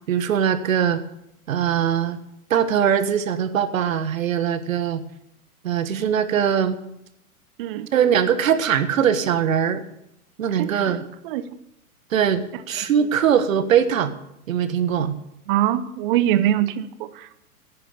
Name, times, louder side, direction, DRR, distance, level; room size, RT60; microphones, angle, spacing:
voice 1, 0.1-1.0 1.5-2.2 2.5-5.0 5.6-6.8 7.9-9.8 10.4-11.0 12.1-14.1 14.5-15.1, right 8 dB, 65° right, 11 dB, 1.4 m, -21 dB
voice 2, 10.6-11.0 11.2-11.4 13.0-13.1 15.5-17.4, right 12 dB, 35° right, 14 dB, 0.9 m, -23 dB
10.5 x 9.4 x 7.1 m, 0.80 s
hypercardioid pair, 120°, 44 cm